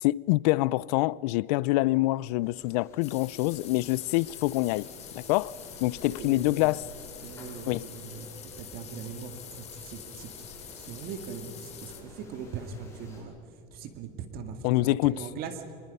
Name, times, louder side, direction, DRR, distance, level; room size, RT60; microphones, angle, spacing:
voice 1, 0.0-5.5 5.8-6.8 7.7-7.9 14.6-15.1, left 20 dB, 65° left, 0.5 m, -26 dB
sound 1, 2.4-13.2, left 2 dB, 15° left, 6.6 m, -50 dB
sound 2, 3.0-12.0, left 9 dB, 30° left, 2.5 m, -46 dB
voice 2, 6.1-6.7 7.2-13.3 13.7-15.6, right 6 dB, 45° right, 2.2 m, -41 dB
25.0 x 21.0 x 5.5 m
supercardioid pair, 130°, 21 cm